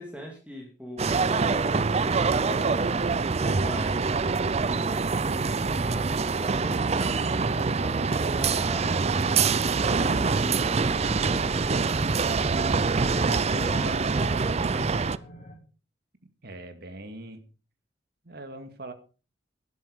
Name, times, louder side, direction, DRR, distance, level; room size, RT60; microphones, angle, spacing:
voice 1, 0.0-4.0 4.5-9.0 9.6-12.3 13.0-15.1, equal, 5° right, 0 dB, 2.6 m, -41 dB
sound 1, 1.0-15.2, right 4 dB, 35° right, 0.5 m, -25 dB
sound 2, 10.2-15.5, equal, 45° left, 4.5 m, -47 dB
voice 2, 16.4-17.4 18.2-18.9, right 2 dB, 60° right, 8 dB, 2.1 m, -41 dB
12.0 x 11.0 x 5.1 m, 0.36 s
head